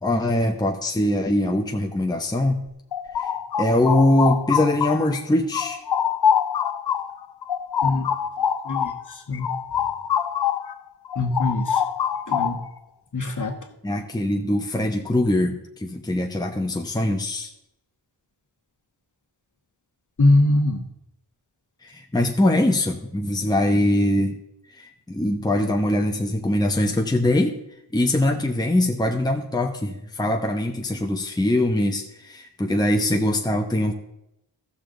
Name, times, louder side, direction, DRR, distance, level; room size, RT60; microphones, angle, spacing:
voice 1, 0.0-2.6 3.2-3.3 3.6-5.8 13.8-17.5 21.8-24.4 24.7-27.6 27.9-33.9, left 1 dB, 10° left, 2 dB, 0.9 m, -22 dB
sound 1, 2.7-5.2 5.5-10.7 11.0-12.8, left 8 dB, 60° left, 0.7 m, -25 dB
voice 2, 11.2-11.8 12.3-12.6 13.1-13.6 20.2-20.8, left 2 dB, 40° left, 3 dB, 1.5 m, -21 dB
14.0 x 6.9 x 3.8 m, 0.83 s
cardioid pair, 50°, 44 cm